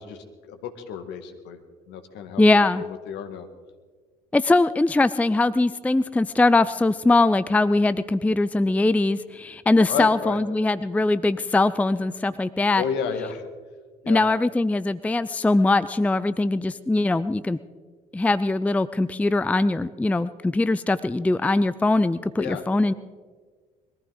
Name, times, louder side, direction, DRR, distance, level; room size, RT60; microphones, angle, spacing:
voice 1, 0.0-1.6 1.9-3.5 9.9-10.4 12.8-13.5 14.0-14.2 22.4-22.6, left 7 dB, 60° left, 7 dB, 1.7 m, -32 dB
voice 2, 2.4-2.8 4.3-12.8 14.1-17.6 18.1-22.9, left 2 dB, 5° left, 15 dB, 0.5 m, -21 dB
22.5 x 14.5 x 4.0 m, 1.5 s
figure-of-eight pair, 50°, 20 cm